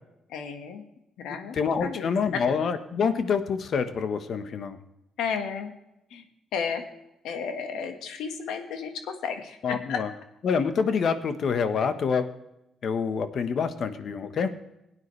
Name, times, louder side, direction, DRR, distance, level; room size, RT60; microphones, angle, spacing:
voice 1, 0.3-0.8 1.2-1.5 1.8-2.4 5.2-5.7 6.1-6.2 6.5-6.8 7.2-10.0, left 6 dB, 85° left, 6 dB, 1.5 m, -33 dB
voice 2, 1.5-4.8 9.6-10.1 10.4-12.3 12.8-14.5, left 6 dB, 60° left, 9 dB, 1.2 m, -26 dB
17.5 x 9.5 x 3.2 m, 0.87 s
cardioid pair, 90°, 0 cm